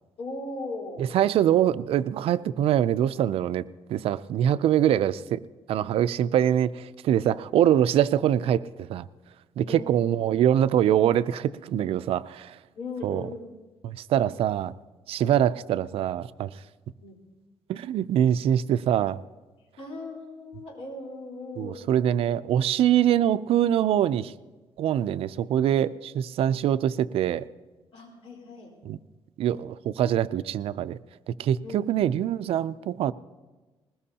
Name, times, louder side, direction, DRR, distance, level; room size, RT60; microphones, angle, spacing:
voice 1, 0.2-1.1 9.6-10.0 12.7-13.5 17.0-17.2 19.8-21.9 27.9-28.7 31.6-32.0, left 2 dB, 75° left, -1 dB, 4.3 m, -38 dB
voice 2, 1.0-3.6 3.9-5.4 5.7-9.1 9.6-12.6 13.0-13.2 13.8-14.7 15.1-16.5 17.7-19.2 21.6-24.3 24.8-27.4 28.8-29.0 29.4-31.0 31.4-33.1, right 10 dB, 70° right, 15 dB, 0.4 m, -24 dB
20.5 x 19.5 x 2.8 m, 1.2 s
cardioid pair, 145°, 10 cm